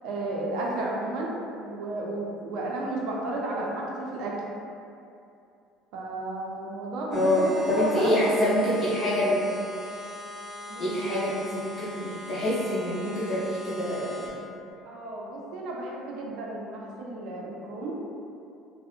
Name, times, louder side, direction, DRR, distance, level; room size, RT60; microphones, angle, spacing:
voice 1, 0.0-4.3 5.9-8.4 10.7-10.8 14.8-18.1, right 2 dB, 65° right, -3 dB, 0.4 m, -33 dB
voice 2, 7.1-9.4 10.8-14.3, left 1 dB, 25° left, -10 dB, 0.6 m, -26 dB
sound 1, 7.1-14.3, left 1 dB, 20° right, 0.7 m, -41 dB
2.6 x 2.0 x 2.4 m, 2.6 s
cardioid pair, 155°, 0 cm